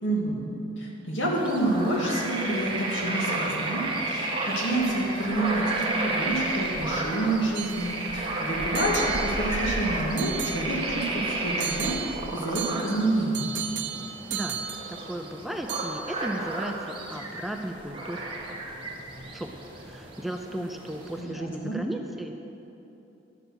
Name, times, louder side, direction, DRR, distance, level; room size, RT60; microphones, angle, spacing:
voice 1, 0.0-0.4 0.8-13.4 21.2-21.8, right 1 dB, 75° left, -2 dB, 2.2 m, -28 dB
sound 1, 1.3-21.2, right 2 dB, 25° right, 1.4 m, -32 dB
sound 2, 7.5-8.3 8.7-9.8 10.2-11.1 11.6-15.4 15.7-16.3, right 8 dB, 65° right, 0.7 m, -36 dB
voice 2, 14.9-18.2 19.3-19.5 19.8-22.3, right 1 dB, ahead, 4 dB, 0.4 m, -35 dB
12.0 x 8.0 x 6.3 m, 3.0 s
head